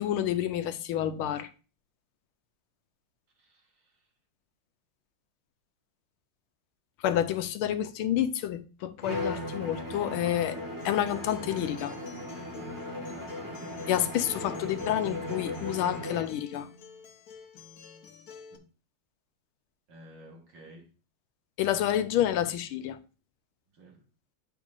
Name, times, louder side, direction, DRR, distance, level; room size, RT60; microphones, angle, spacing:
voice 1, 0.0-1.5 7.0-10.6 10.8-12.0 13.9-16.7 21.6-23.0, left 11 dB, 85° left, 1.5 m, -29 dB
voice 2, 3.4-4.1 18.5-18.7 19.9-20.9 23.7-24.0, right 1 dB, 60° right, 2.2 m, -53 dB
Bowed string instrument, 9.0-16.4, left 1 dB, 10° right, 1.3 m, -37 dB
Acoustic guitar, 10.6-18.6, left 6 dB, 60° left, 1.0 m, -50 dB
8.8 x 6.1 x 2.5 m
omnidirectional pair, 2.3 m